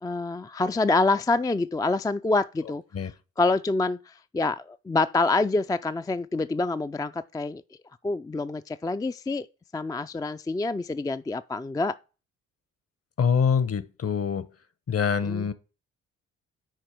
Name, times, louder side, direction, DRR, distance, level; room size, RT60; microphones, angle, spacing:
voice 1, 0.0-2.8 3.4-7.6 8.0-9.5 9.7-12.0 15.2-15.5, left 3 dB, 10° left, 0.4 m, -26 dB
voice 2, 13.2-14.5 14.9-15.5, left 6 dB, 45° left, 1.0 m, -24 dB
9.1 x 4.7 x 4.5 m
hypercardioid pair, 45°, 33 cm